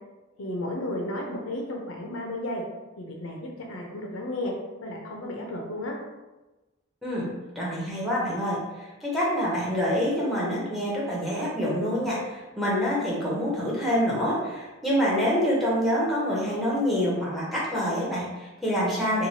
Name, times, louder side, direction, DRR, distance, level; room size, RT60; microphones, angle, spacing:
voice 1, 0.4-2.6 3.0-4.5 4.8-5.9, left 1 dB, 80° left, 0 dB, 0.6 m, -33 dB
voice 2, 7.6-19.3, equal, ahead, -6 dB, 0.6 m, -26 dB
3.1 x 2.3 x 2.7 m, 1.1 s
head